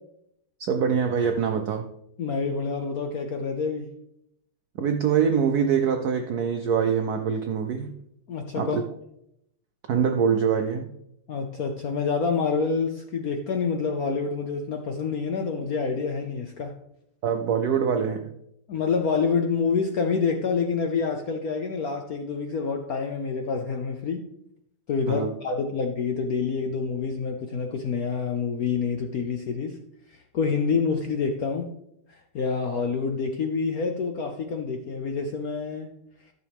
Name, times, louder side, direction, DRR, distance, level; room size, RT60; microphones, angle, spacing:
voice 1, 0.6-1.9 4.8-7.9 8.6-8.8 9.9-10.9 17.2-18.3 25.1-25.6, right 7 dB, 85° right, 6 dB, 0.8 m, -24 dB
voice 2, 2.2-3.9 8.3-8.8 11.3-16.8 18.7-24.2 24.9-29.8 30.1-31.7 32.1-35.9, left 5 dB, 70° left, 4 dB, 0.8 m, -27 dB
14.0 x 6.8 x 3.5 m, 0.80 s
omnidirectional pair, 2.4 m